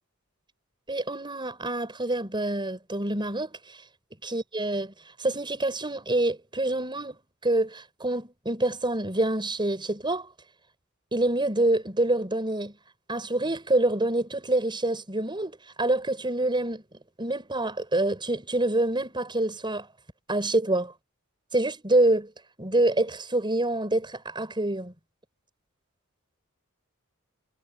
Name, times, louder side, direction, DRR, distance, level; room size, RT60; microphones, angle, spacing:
voice 1, 0.9-3.5 4.2-4.9 5.2-10.3 11.1-12.7 13.1-16.8 17.2-19.9 20.3-20.9 21.5-22.3 22.6-24.9, right 2 dB, 20° right, 6.5 m, -26 dB
head